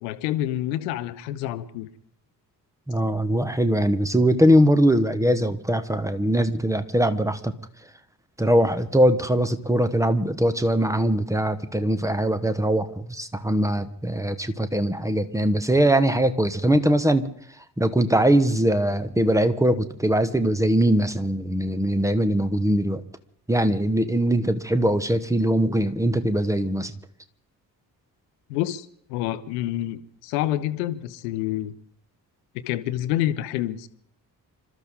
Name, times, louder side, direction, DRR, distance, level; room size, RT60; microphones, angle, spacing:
voice 1, 0.0-1.9 28.5-31.7 32.5-33.9, left 13 dB, 70° left, 13 dB, 1.0 m, -28 dB
voice 2, 2.9-7.5 8.4-17.3 17.8-23.0 23.5-26.9, right 1 dB, 5° right, 11 dB, 1.3 m, -21 dB
27.5 x 13.5 x 3.8 m, 0.66 s
figure-of-eight pair, 40°, 50 cm